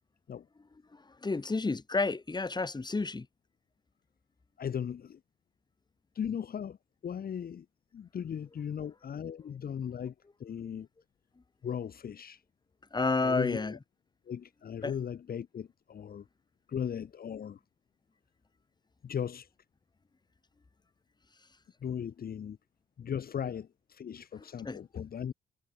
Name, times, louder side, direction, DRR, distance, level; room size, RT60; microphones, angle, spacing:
voice 1, 1.2-3.3 12.9-13.7 14.8-14.9 24.6-24.8, left 3 dB, 20° left, 2.7 m, -30 dB
voice 2, 4.6-5.2 6.1-6.8 7.0-7.6 7.9-10.1 10.4-10.9 11.6-12.4 13.2-13.8 14.3-16.2 16.7-17.6 19.0-19.5 21.8-22.6 23.0-25.3, left 8 dB, 50° left, 1.5 m, -37 dB
cardioid pair, 90°, 20 cm